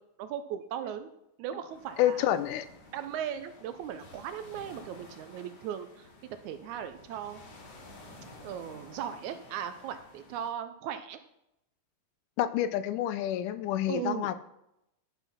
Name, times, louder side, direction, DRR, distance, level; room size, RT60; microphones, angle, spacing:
voice 1, 0.2-1.1 1.4-2.3 2.9-7.4 8.4-11.2 13.9-14.3, right 9 dB, 80° right, 10 dB, 1.9 m, -38 dB
sound 1, 1.7-10.5, left 2 dB, 55° left, 2.8 m, -52 dB
voice 2, 2.0-2.7 12.4-14.3, left 12 dB, 80° left, 13 dB, 2.1 m, -28 dB
11.5 x 5.8 x 5.7 m, 0.83 s
omnidirectional pair, 3.7 m